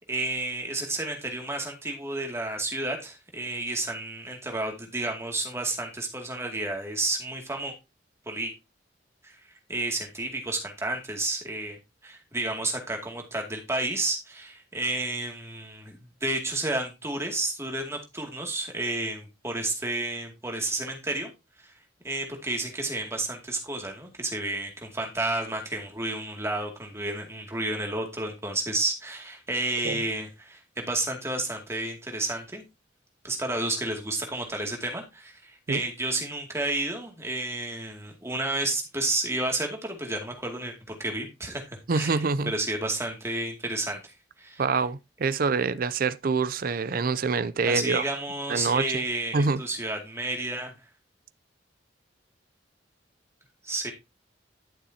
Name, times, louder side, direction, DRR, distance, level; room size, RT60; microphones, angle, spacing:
voice 1, 0.1-7.7 8.3-8.5 9.2-9.3 9.7-21.3 21.6-21.7 22.0-32.6 33.2-41.6 41.9-44.6 47.7-50.7 53.6-53.9, right 2 dB, 15° right, 2.4 m, -31 dB
voice 2, 41.9-42.5 44.6-48.0 48.5-48.9 49.3-49.6, right 4 dB, 50° right, 0.5 m, -26 dB
11.5 x 7.1 x 2.8 m
head